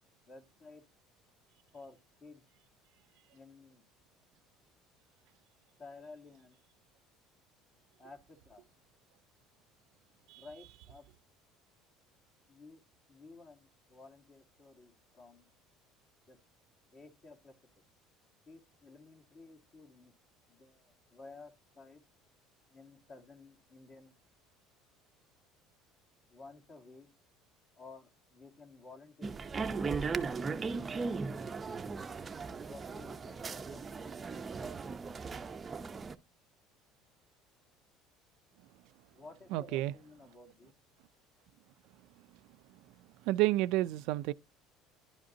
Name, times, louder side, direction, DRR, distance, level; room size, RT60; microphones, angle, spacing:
voice 1, 0.3-0.8 1.7-2.4 3.3-3.8 5.8-6.6 8.0-8.6 10.3-11.1 12.5-12.8 13.1-15.5 16.3-16.4 16.9-17.5 18.5-20.1 20.5-22.0 22.7-24.2 26.3-27.1 27.8-29.4 29.9-30.7 32.6-34.4 39.1-40.7, left 3 dB, 40° left, 2.2 m, -54 dB
sound 1, 29.2-36.2, right 4 dB, 25° right, 0.6 m, -37 dB
voice 2, 39.5-39.9 43.3-44.3, right 17 dB, 70° right, 0.4 m, -30 dB
11.0 x 5.0 x 2.7 m
cardioid pair, 120°, 0 cm